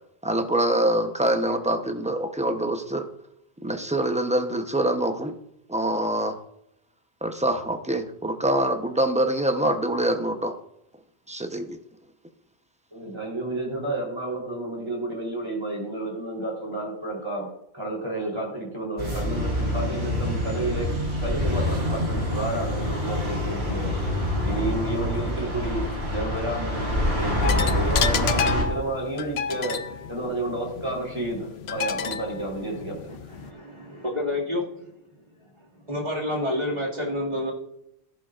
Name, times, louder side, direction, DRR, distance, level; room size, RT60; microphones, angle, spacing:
voice 1, 0.2-3.1 3.6-5.4 5.7-6.4 7.2-10.6 11.3-11.8, right 1 dB, 5° right, 6 dB, 0.8 m, -25 dB
voice 2, 12.9-17.5 17.7-20.9 21.2-24.1 24.4-33.2, right 1 dB, 25° right, -2 dB, 3.7 m, -31 dB
sound 1, 19.0-28.6, left 1 dB, 85° right, 3.9 m, -26 dB
sound 2, 27.4-33.5, left 7 dB, 80° left, 0.9 m, -30 dB
voice 3, 33.1-34.8 35.9-37.5, left 1 dB, 45° right, -4 dB, 2.4 m, -29 dB
14.5 x 10.5 x 2.5 m, 0.78 s
omnidirectional pair, 1.0 m